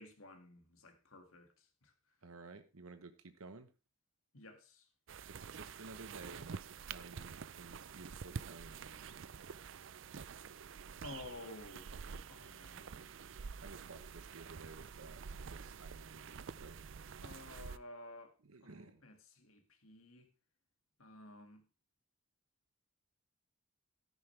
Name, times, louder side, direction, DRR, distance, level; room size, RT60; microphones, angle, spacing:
voice 1, 0.0-1.9 4.3-4.9 11.0-11.9 12.3-13.1 17.2-20.3 21.0-21.6, left 2 dB, 80° left, 2.1 m, -53 dB
voice 2, 2.2-3.7 5.3-9.1 13.6-16.8 18.4-19.0, right 3 dB, 90° right, 1.0 m, -54 dB
sound 1, 5.1-17.8, right 6 dB, 60° right, 0.5 m, -48 dB
13.5 x 10.5 x 3.3 m
head